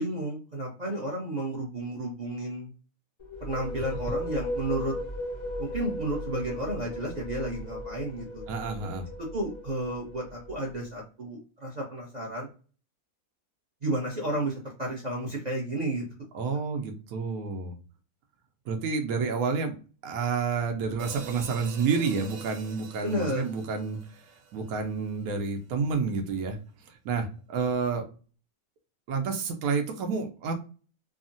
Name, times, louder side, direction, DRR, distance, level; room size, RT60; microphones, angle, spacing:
voice 1, 0.0-2.7 3.4-4.9 5.6-8.4 9.2-12.5 13.8-14.5 14.8-16.0 23.0-23.4, right 1 dB, 45° right, -2 dB, 0.6 m, -32 dB
sound 1, 3.2-10.8, left 1 dB, 40° left, 0.4 m, -36 dB
voice 2, 8.5-9.1 16.3-17.7 18.7-19.8 20.0-24.0 24.5-26.6 27.0-28.0 29.1-30.5, right 5 dB, 80° right, 4 dB, 1.1 m, -29 dB
sound 2, 21.0-25.4, right 6 dB, 65° right, 0.9 m, -47 dB
3.5 x 2.0 x 2.5 m, 0.37 s
omnidirectional pair, 1.5 m